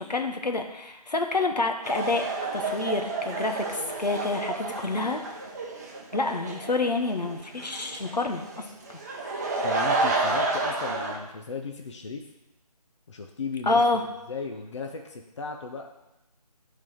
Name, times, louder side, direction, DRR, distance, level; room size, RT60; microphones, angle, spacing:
voice 1, 0.0-2.2 2.5-5.2 6.1-9.0 13.7-14.0, left 3 dB, 85° left, 5 dB, 1.1 m, -28 dB
sound 1, 1.8-11.2, right 3 dB, 25° right, 0.8 m, -30 dB
voice 2, 9.6-12.2 13.1-13.8 14.3-15.9, left 4 dB, 45° left, 4 dB, 0.7 m, -36 dB
10.0 x 4.0 x 4.9 m, 0.96 s
figure-of-eight pair, 165°, 21 cm